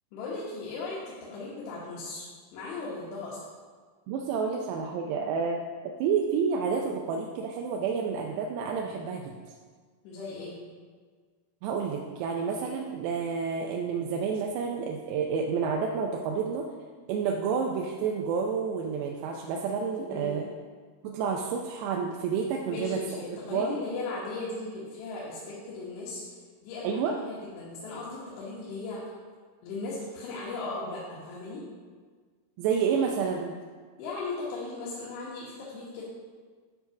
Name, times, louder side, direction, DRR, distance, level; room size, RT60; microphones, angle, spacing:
voice 1, 0.1-1.0 1.3-2.2 2.5-3.4 10.0-10.6 20.1-20.4 22.7-26.3 26.6-29.0 29.6-31.6 34.0-36.0, left 3 dB, 80° left, -7 dB, 3.5 m, -37 dB
voice 2, 4.1-5.6 6.0-9.3 11.6-16.7 17.1-20.5 21.0-23.0 23.3-23.8 26.8-27.1 32.6-33.5, right 6 dB, 85° right, 1 dB, 2.7 m, -29 dB
10.0 x 4.0 x 5.8 m, 1.6 s
omnidirectional pair, 4.9 m